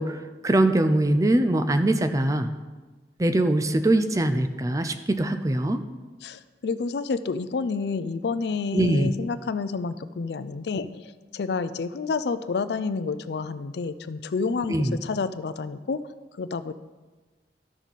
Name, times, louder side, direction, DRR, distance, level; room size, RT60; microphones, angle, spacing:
voice 1, 0.0-2.5 3.2-5.8 8.7-9.1 14.7-15.0, right 1 dB, 20° right, 9 dB, 0.4 m, -22 dB
voice 2, 6.2-16.0 16.4-16.7, left 4 dB, 70° left, 13 dB, 0.4 m, -29 dB
12.0 x 6.3 x 4.0 m, 1.3 s
head